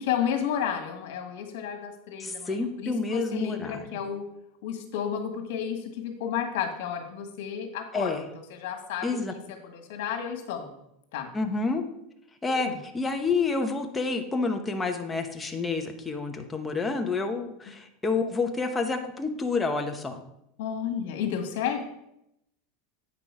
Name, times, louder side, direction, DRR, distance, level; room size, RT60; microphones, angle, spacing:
voice 1, 0.0-4.2 4.6-8.1 8.5-10.7 11.1-11.3 12.5-12.8 20.6-21.8, left 8 dB, 65° left, 4 dB, 1.7 m, -32 dB
voice 2, 2.2-3.8 7.9-8.3 9.0-9.3 11.3-11.8 12.4-20.2, left 4 dB, 10° left, 4 dB, 0.8 m, -29 dB
8.9 x 6.0 x 4.8 m, 0.80 s
supercardioid pair, 170°, 0 cm